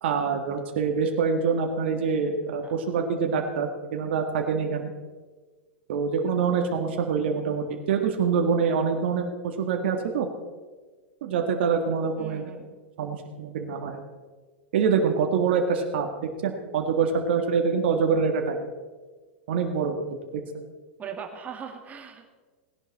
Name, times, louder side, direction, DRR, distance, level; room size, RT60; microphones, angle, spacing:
voice 1, 0.0-4.9 5.9-10.3 11.2-12.5 13.0-14.0 14.7-16.1 16.4-18.6 19.5-20.1 20.3-20.4, right 5 dB, 65° right, 3 dB, 1.7 m, -25 dB
voice 2, 12.2-12.7 21.0-22.4, right 7 dB, 25° right, 3 dB, 2.2 m, -40 dB
18.0 x 11.0 x 4.2 m, 1.4 s
hypercardioid pair, 105°, 6 cm